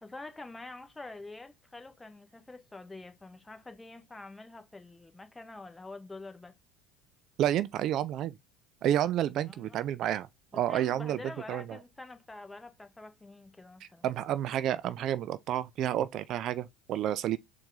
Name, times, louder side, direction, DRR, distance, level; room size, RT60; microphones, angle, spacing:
voice 1, 0.0-6.5 9.4-9.9 10.5-14.0, left 2 dB, 15° left, 1.0 m, -46 dB
voice 2, 7.4-8.3 8.8-10.3 10.5-11.2 11.5-11.6 13.8-17.4, right 11 dB, 55° right, 0.3 m, -30 dB
4.4 x 2.5 x 3.8 m
hypercardioid pair, 70°, 0 cm